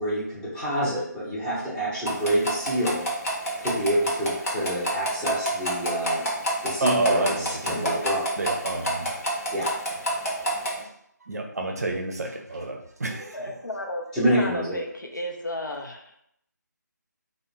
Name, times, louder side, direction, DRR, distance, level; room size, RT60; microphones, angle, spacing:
voice 1, 0.0-3.1 3.6-6.2 6.6-8.2 9.5-9.7 14.1-14.7, equal, 5° left, -10 dB, 0.6 m, -27 dB
sound 1, 2.1-10.8, right 1 dB, 50° left, 0.8 m, -29 dB
voice 2, 6.8-8.0 8.4-9.1 10.8-10.9 11.3-13.6, right 2 dB, 60° right, 2 dB, 0.5 m, -29 dB
voice 3, 13.3-16.1, left 1 dB, 90° left, 1 dB, 0.6 m, -33 dB
2.3 x 2.1 x 3.1 m, 0.72 s
figure-of-eight pair, 155°, 10 cm